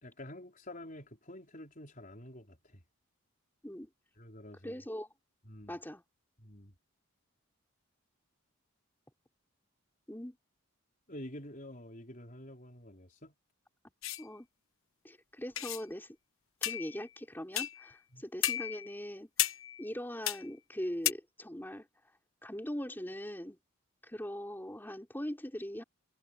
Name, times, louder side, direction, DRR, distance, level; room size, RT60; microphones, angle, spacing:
voice 1, 0.0-2.8 4.2-4.8 5.4-5.7 6.4-6.7 11.1-13.3 18.1-18.2, left 1 dB, 35° left, 4.8 m, -48 dB
voice 2, 4.6-5.1 5.7-6.0 10.1-10.4 14.2-14.5 15.0-16.2 16.6-19.3 19.8-21.9 22.4-23.6 24.0-25.8, equal, 10° left, 3.6 m, -41 dB
sound 1, 14.0-14.2 15.6-15.8 16.6-17.1 17.6-17.9 18.4-18.9 19.4-19.9 20.3-20.5 21.1-21.2, left 13 dB, 65° left, 1.2 m, -33 dB
head